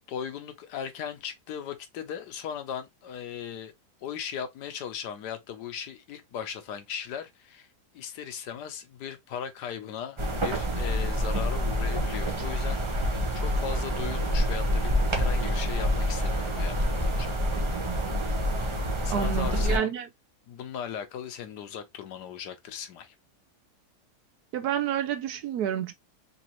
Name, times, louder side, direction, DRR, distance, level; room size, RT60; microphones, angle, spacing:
voice 1, 0.1-3.7 4.0-7.7 7.9-17.4 18.5-18.7 19.0-20.0 20.5-23.1, left 8 dB, 85° left, 1.4 m, -38 dB
sound 1, 10.2-19.8, equal, 25° right, 0.6 m, -27 dB
voice 2, 19.1-20.1 24.5-25.9, right 10 dB, 75° right, 1.2 m, -29 dB
4.0 x 2.7 x 2.9 m
omnidirectional pair, 1.7 m